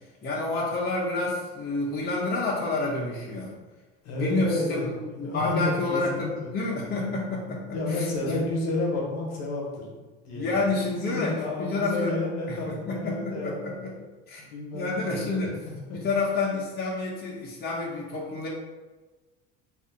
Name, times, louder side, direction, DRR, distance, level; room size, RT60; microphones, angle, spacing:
voice 1, 0.2-3.5 4.2-7.6 7.9-8.4 10.3-12.1 12.5-13.9 14.3-14.5 14.7-15.5 15.9-18.5, left 3 dB, 30° left, -4 dB, 0.8 m, -29 dB
voice 2, 4.0-6.5 7.7-9.9 10.2-10.6 11.1-13.6 14.4-15.5 15.9-16.0, left 2 dB, 60° left, -1 dB, 1.1 m, -31 dB
2.6 x 2.5 x 3.8 m, 1.3 s
supercardioid pair, 90°, 31 cm